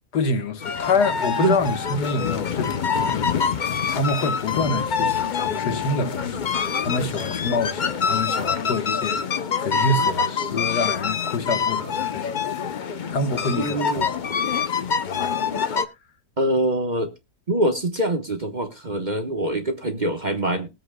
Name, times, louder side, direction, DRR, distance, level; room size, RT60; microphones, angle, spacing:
voice 1, 0.1-14.0 14.3-15.8, left 3 dB, 90° left, 2.0 m, -27 dB
sound 1, 0.6-15.9, left 6 dB, 45° left, 0.6 m, -25 dB
voice 2, 13.6-14.1 16.4-17.1 17.5-20.7, right 1 dB, 30° right, 1.2 m, -24 dB
20.0 x 8.0 x 2.2 m
omnidirectional pair, 1.7 m